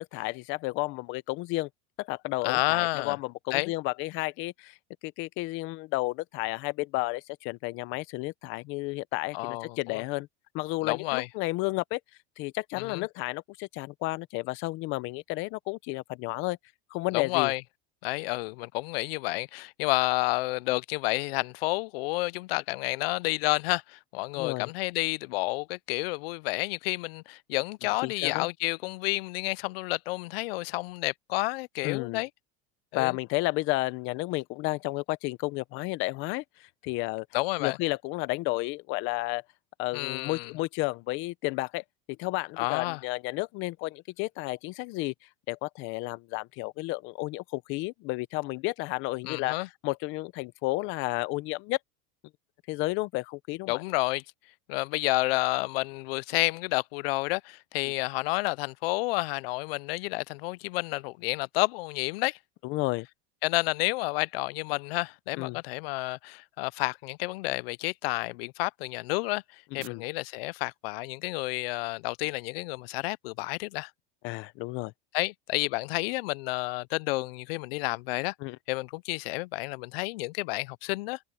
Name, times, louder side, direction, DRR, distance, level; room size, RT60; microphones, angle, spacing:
voice 1, 0.0-1.7 2.0-4.8 5.0-10.3 10.5-12.0 12.4-16.6 16.9-17.5 24.4-24.7 27.8-28.5 31.8-32.2 32.9-37.3 37.6-39.4 39.8-45.1 45.5-51.8 52.7-53.8 62.6-63.1 65.3-65.6 69.7-70.0 74.2-74.9 78.4-78.6, left 22 dB, 45° left, 0.7 m, -32 dB
voice 2, 2.4-3.2 3.5-3.7 9.3-10.0 10.8-11.3 12.7-13.0 17.1-17.6 18.0-32.3 32.9-33.2 37.3-37.8 39.9-40.5 42.6-43.0 49.2-49.7 53.7-54.2 54.7-62.4 63.4-69.4 69.7-73.9 75.1-78.3 78.7-81.2, left 23 dB, 85° left, 0.5 m, -30 dB
sound 1, 60.6-72.4, right 17 dB, 45° right, 3.3 m, -66 dB
supercardioid pair, 165°, 29 cm